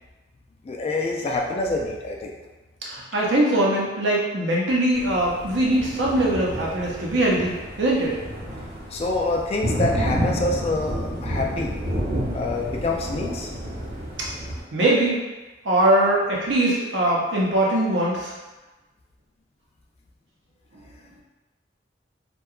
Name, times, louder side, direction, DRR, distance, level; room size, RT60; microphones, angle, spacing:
voice 1, 0.6-2.3 8.9-11.8 12.3-13.5, left 2 dB, 35° left, 0 dB, 0.3 m, -26 dB
voice 2, 2.9-8.2 14.2-14.3 14.7-15.2 15.6-18.3, right 1 dB, 80° right, -4 dB, 0.6 m, -21 dB
Thunder, 4.9-14.6, equal, 50° right, 1.0 m, -30 dB
2.8 x 2.2 x 2.3 m, 1.2 s
head